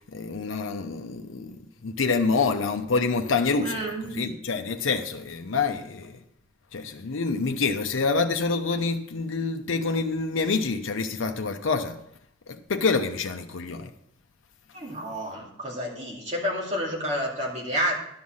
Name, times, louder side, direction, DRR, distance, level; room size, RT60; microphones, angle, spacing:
voice 1, 0.0-1.6 1.8-3.8 4.1-6.2 6.7-12.0 12.5-13.9, left 4 dB, 85° left, 0.7 m, -27 dB
voice 2, 3.6-4.3 14.7-17.9, equal, 35° right, 2.3 m, -30 dB
11.5 x 5.5 x 6.3 m
head